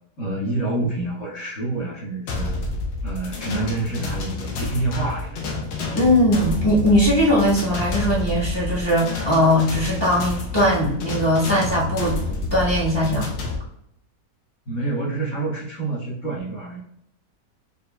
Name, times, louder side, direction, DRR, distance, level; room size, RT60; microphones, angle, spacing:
voice 1, 0.2-2.5 3.0-5.6 14.6-16.8, right 2 dB, 45° left, -7 dB, 1.6 m, -27 dB
sound 1, 2.3-13.6, left 2 dB, 90° left, 1.5 m, -29 dB
voice 2, 5.9-12.2 12.5-13.3, equal, 15° left, -6 dB, 1.0 m, -19 dB
4.5 x 3.6 x 2.3 m, 0.74 s
omnidirectional pair, 1.9 m